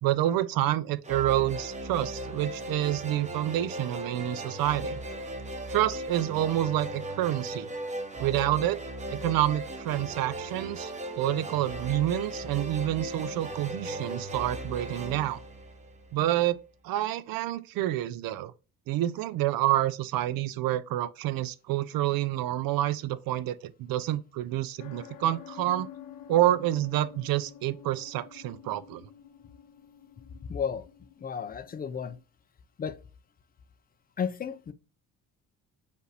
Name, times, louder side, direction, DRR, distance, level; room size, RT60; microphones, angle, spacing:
voice 1, 0.0-5.0 5.7-7.7 8.2-8.8 9.1-15.4 16.1-16.6 16.8-18.5 18.9-25.9 26.3-29.1, right 14 dB, 75° right, 0.5 m, -28 dB
sound 1, 1.0-16.3, right 1 dB, 20° right, 0.7 m, -37 dB
sound 2, 24.8-32.2, left 10 dB, 75° left, 0.6 m, -49 dB
voice 2, 30.4-30.9 31.2-32.2 32.8-33.0 34.2-34.7, left 7 dB, 25° left, 0.3 m, -33 dB
5.3 x 2.5 x 3.2 m
cardioid pair, 120°, 35 cm